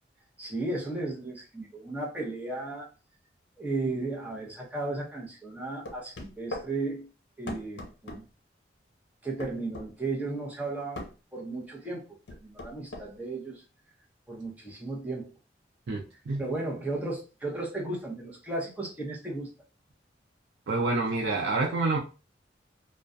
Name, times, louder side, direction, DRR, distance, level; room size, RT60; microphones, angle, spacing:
voice 1, 0.4-2.9 3.6-7.1 7.4-8.2 9.2-11.0 11.3-12.0 12.4-13.6 14.3-15.3 16.4-19.5, right 2 dB, 10° right, -3 dB, 0.7 m, -34 dB
sound 1, 5.9-6.7 7.5-8.2 9.4-9.9 11.0-11.1 12.3-13.1, left 2 dB, 75° left, 0.6 m, -39 dB
voice 2, 15.9-16.4 20.7-22.0, right 3 dB, 90° right, -1 dB, 0.5 m, -27 dB
2.3 x 2.1 x 2.5 m, 0.33 s
head